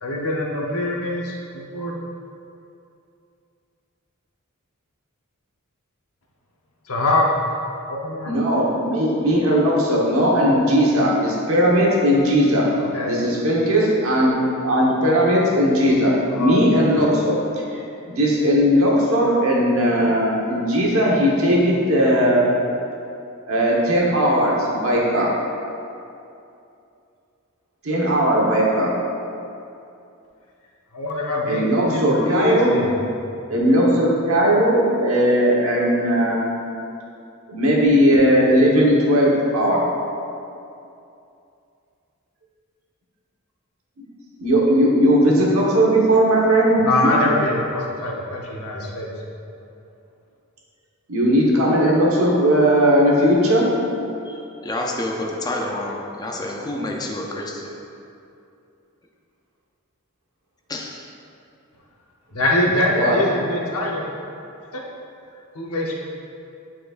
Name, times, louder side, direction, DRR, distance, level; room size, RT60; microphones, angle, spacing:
voice 1, 0.0-1.9 6.9-7.3 7.9-8.3 12.9-13.2 16.3-16.9 30.9-32.9 46.8-49.1 62.3-64.1 64.7-64.8 65.5-65.9, left 1 dB, 90° left, -2 dB, 0.9 m, -23 dB
voice 2, 8.2-12.6 13.1-14.4 14.6-17.4 18.1-22.5 23.5-25.3 27.8-28.9 31.5-32.8 33.5-36.5 37.5-39.8 44.4-47.1 51.1-53.7 63.0-63.2, equal, 70° right, -4 dB, 1.2 m, -18 dB
voice 3, 54.2-57.7 60.7-61.1 65.3-65.4, left 1 dB, 20° left, 0 dB, 0.4 m, -29 dB
9.1 x 4.3 x 2.5 m, 2.6 s
head